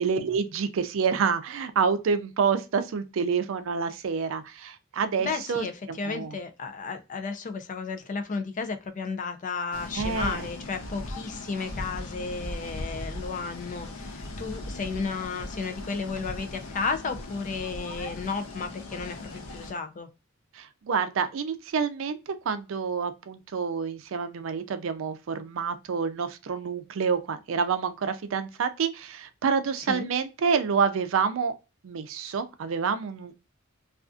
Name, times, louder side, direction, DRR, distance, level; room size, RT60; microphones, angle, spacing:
voice 1, 0.0-6.4 9.9-10.5 20.5-31.5 31.8-33.3, right 6 dB, 70° right, 0.4 m, -28 dB
voice 2, 5.2-20.1 29.9-30.1, left 4 dB, 40° left, 0.4 m, -33 dB
sound 1, 9.7-19.7, left 1 dB, 90° left, 0.5 m, -38 dB
2.5 x 2.4 x 2.3 m
head